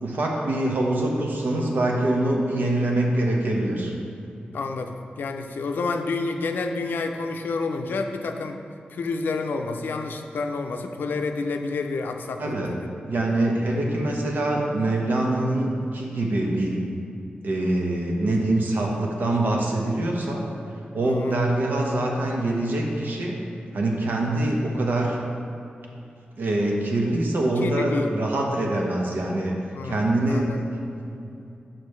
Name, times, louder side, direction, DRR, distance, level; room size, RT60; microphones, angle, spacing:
voice 1, 0.0-3.9 12.4-12.7 13.1-16.8 17.4-20.4 20.9-23.4 23.7-25.2 26.4-29.5 29.8-30.6 30.9-31.0, right 1 dB, 70° right, -1 dB, 0.9 m, -24 dB
voice 2, 4.5-8.6 8.9-12.9 21.0-21.3 27.6-28.2 29.7-30.0 30.3-30.6, left 3 dB, 80° left, 5 dB, 0.4 m, -29 dB
6.7 x 5.8 x 3.2 m, 2.7 s
wide cardioid pair, 125°, 3 cm